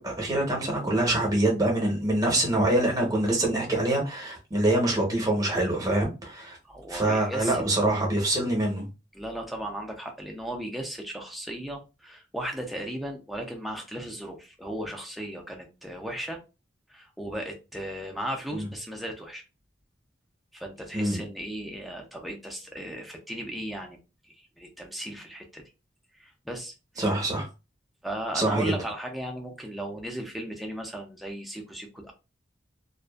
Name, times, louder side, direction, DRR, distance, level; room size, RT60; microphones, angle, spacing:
voice 1, 0.0-6.6 6.9-8.9 18.5-18.7 20.9-21.2 27.0-27.5 28.3-28.8, right 1 dB, 20° right, 0.8 m, -25 dB
voice 2, 6.6-7.6 9.1-16.4 16.9-19.4 20.5-24.0 24.2-25.6 26.2-27.1 28.0-32.1, right 1 dB, ahead, 0.4 m, -36 dB
2.5 x 2.3 x 2.3 m
head